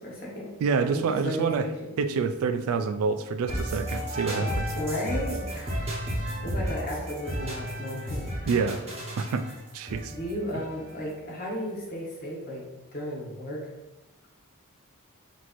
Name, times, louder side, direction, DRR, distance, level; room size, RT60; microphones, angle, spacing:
voice 1, 0.0-0.5 0.9-1.9 4.4-8.5 10.1-12.6 12.9-13.6, equal, 40° left, -4 dB, 1.3 m, -34 dB
voice 2, 0.6-1.7 2.0-4.5 8.5-8.8 9.2-9.4 9.7-10.1 10.5-10.6, right 5 dB, 65° right, 9 dB, 0.3 m, -27 dB
sound 1, 3.5-11.3, equal, 30° right, 1.1 m, -33 dB
5.8 x 3.0 x 2.6 m, 1.0 s
head